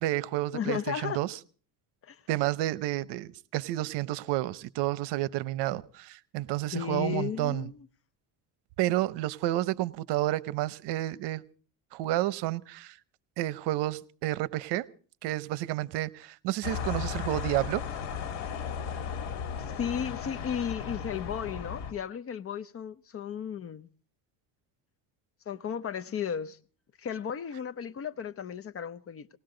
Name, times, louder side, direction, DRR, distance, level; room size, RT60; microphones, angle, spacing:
voice 1, 0.0-1.3 2.3-7.7 8.8-11.4 11.9-13.0 13.4-14.9 15.2-17.8, right 16 dB, 70° right, 0.9 m, -30 dB
voice 2, 0.5-1.2 2.0-2.2 6.7-7.8 19.0-19.1 19.6-23.9 25.5-26.6 27.0-29.3, left 8 dB, 35° left, 0.7 m, -34 dB
sound 1, 16.6-21.9, left 7 dB, 75° left, 2.6 m, -35 dB
19.5 x 18.5 x 3.8 m
cardioid pair, 130°, 42 cm